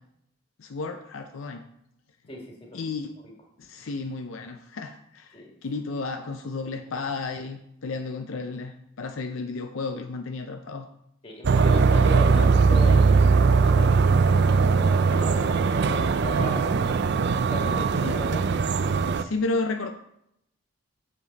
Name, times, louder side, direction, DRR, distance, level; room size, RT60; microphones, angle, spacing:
voice 1, 0.6-1.6 2.7-3.1 3.6-10.9 18.0-18.2 19.2-19.9, left 3 dB, 70° left, 6 dB, 0.5 m, -32 dB
voice 2, 2.3-2.8 5.3-5.5 11.2-16.8 17.5-18.4, left 1 dB, 25° left, -1 dB, 1.7 m, -37 dB
sound 1, 11.4-19.2, right 4 dB, 50° right, 0.4 m, -20 dB
7.5 x 6.9 x 4.0 m, 0.76 s
head